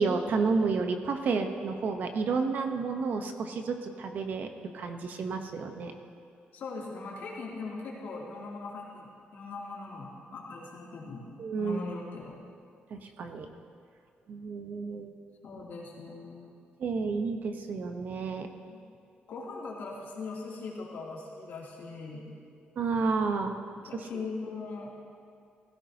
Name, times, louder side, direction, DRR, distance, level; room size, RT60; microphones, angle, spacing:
voice 1, 0.0-5.9 11.4-11.8 12.9-13.5 14.3-15.1 16.8-18.5 22.8-23.6, right 4 dB, 55° right, 6 dB, 1.0 m, -30 dB
voice 2, 6.5-11.3 11.6-12.4 15.4-16.5 18.7-18.8 19.3-22.3 23.8-24.9, left 3 dB, 70° left, -4 dB, 2.8 m, -40 dB
17.0 x 15.5 x 2.9 m, 2.3 s
cardioid pair, 140°, 4 cm